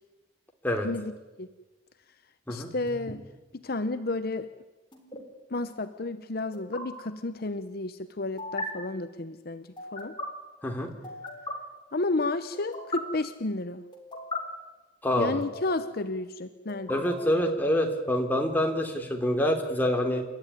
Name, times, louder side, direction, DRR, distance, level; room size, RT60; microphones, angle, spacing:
voice 1, 2.5-3.2 3.5-4.5 5.5-10.1 11.9-13.8 15.2-17.0, left 2 dB, 55° left, 10 dB, 0.9 m, -32 dB
sound 1, 2.9-3.1 4.9-5.2 6.5-6.8 8.4-8.7 9.8-10.3 11.0-11.5 12.5-13.0 13.9-14.4 15.4-16.0 16.7-17.5, left 2 dB, 25° left, 3.7 m, -38 dB
voice 2, 15.0-15.4 16.9-20.2, left 1 dB, 10° left, 2 dB, 3.0 m, -26 dB
29.0 x 13.5 x 9.8 m, 1.2 s
head